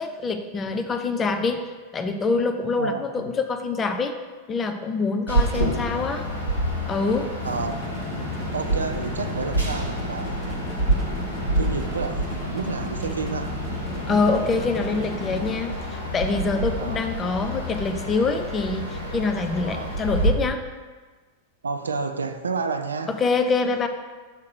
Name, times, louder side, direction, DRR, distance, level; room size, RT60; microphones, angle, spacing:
voice 1, 0.0-1.6 1.9-4.1 4.5-6.2 6.9-7.3 14.1-20.6 23.2-23.9, left 4 dB, 20° left, 7 dB, 0.6 m, -25 dB
voice 2, 2.8-3.3 5.3-6.1 7.4-7.7 8.5-10.6 11.6-13.6 16.8-17.0 19.6-20.0 21.6-23.2, right 4 dB, 75° right, 8 dB, 0.5 m, -30 dB
sound 1, 5.3-20.3, right 1 dB, 85° left, 1.7 m, -28 dB
sound 2, 7.4-15.5, right 1 dB, ahead, 1.3 m, -36 dB
6.4 x 3.8 x 6.2 m, 1.4 s
figure-of-eight pair, 90°, 0 cm